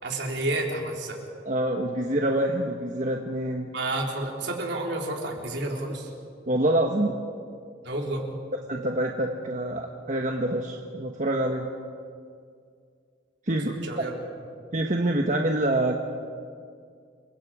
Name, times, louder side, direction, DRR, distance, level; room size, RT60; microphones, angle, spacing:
voice 1, 0.0-1.2 3.7-6.1 7.8-8.2 13.7-14.1, right 2 dB, 65° right, 0 dB, 4.0 m, -30 dB
voice 2, 1.4-3.7 6.5-7.2 8.7-11.7 13.5-13.9 14.7-16.0, right 1 dB, 40° right, 2 dB, 1.4 m, -26 dB
29.0 x 24.0 x 5.0 m, 2.2 s
head